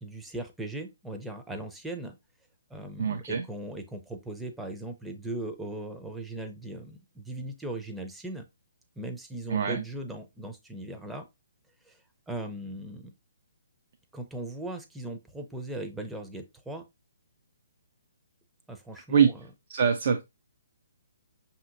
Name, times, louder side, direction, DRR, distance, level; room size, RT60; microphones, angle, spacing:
voice 1, 0.0-2.2 2.7-8.4 9.0-11.3 11.9-12.0 12.3-13.1 14.1-16.8 18.7-19.3, right 1 dB, 5° right, 4 dB, 0.5 m, -38 dB
voice 2, 3.0-3.4 9.5-9.8 19.1-19.3 19.7-20.2, right 7 dB, 55° right, 6 dB, 0.5 m, -24 dB
5.5 x 2.8 x 2.5 m, 0.22 s
hypercardioid pair, 140°, 0 cm